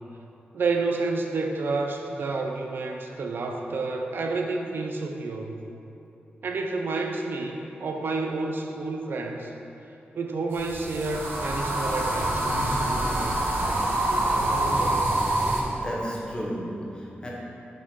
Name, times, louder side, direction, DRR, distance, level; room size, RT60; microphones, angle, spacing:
voice 1, 0.5-5.7 6.4-9.5 10.1-12.8, right 3 dB, 65° right, 3 dB, 0.5 m, -29 dB
sound 1, 10.5-15.6, right 1 dB, 80° right, 1.0 m, -25 dB
voice 2, 15.7-17.3, equal, 25° left, -4 dB, 0.9 m, -33 dB
5.1 x 4.3 x 5.3 m, 2.9 s
wide cardioid pair, 165°, 4 cm